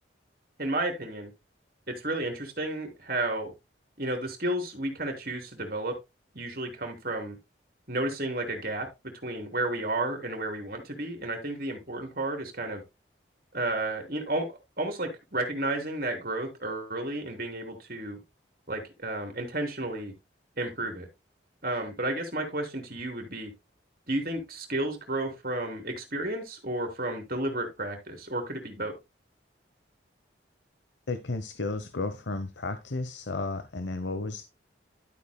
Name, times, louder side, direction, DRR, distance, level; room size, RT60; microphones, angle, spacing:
voice 1, 0.6-1.3 1.9-3.5 4.0-5.9 6.3-7.4 7.9-8.9 9.2-12.8 13.5-14.5 14.8-18.2 18.7-20.1 20.6-21.1 21.6-23.5 24.1-28.9, right 2 dB, 50° right, 5 dB, 3.2 m, -32 dB
voice 2, 31.1-34.5, left 3 dB, 70° left, 11 dB, 0.9 m, -33 dB
12.0 x 8.5 x 2.2 m, 0.23 s
head